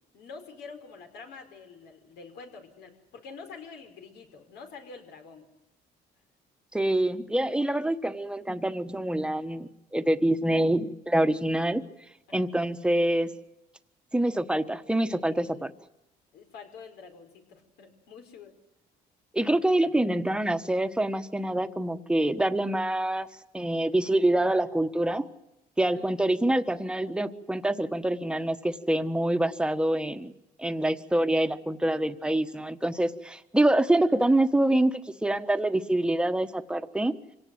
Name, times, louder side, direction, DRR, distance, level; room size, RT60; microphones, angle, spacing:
voice 1, 0.1-5.5 12.3-12.5 15.4-15.7 16.3-18.5 25.8-26.1, left 5 dB, 80° left, 5 dB, 5.0 m, -47 dB
voice 2, 6.7-11.8 12.3-13.3 14.1-15.7 19.3-23.3 23.5-25.2 25.8-30.3 30.6-37.1, right 1 dB, 5° right, 9 dB, 1.3 m, -26 dB
26.0 x 18.0 x 7.9 m, 0.91 s
cardioid pair, 110°, 17 cm